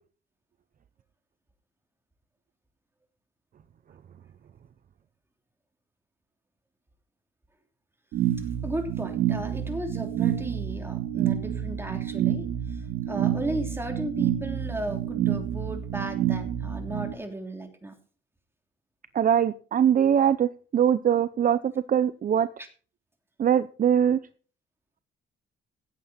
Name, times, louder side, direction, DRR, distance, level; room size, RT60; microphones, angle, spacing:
sound 1, 8.1-17.1, right 11 dB, 90° right, 2.0 m, -28 dB
voice 1, 8.4-17.9 22.6-22.7, right 1 dB, 10° right, 4 dB, 3.2 m, -35 dB
voice 2, 19.1-22.5 23.4-24.2, right 9 dB, 45° right, 14 dB, 0.6 m, -22 dB
16.0 x 8.6 x 4.2 m, 0.41 s
cardioid pair, 90°, 20 cm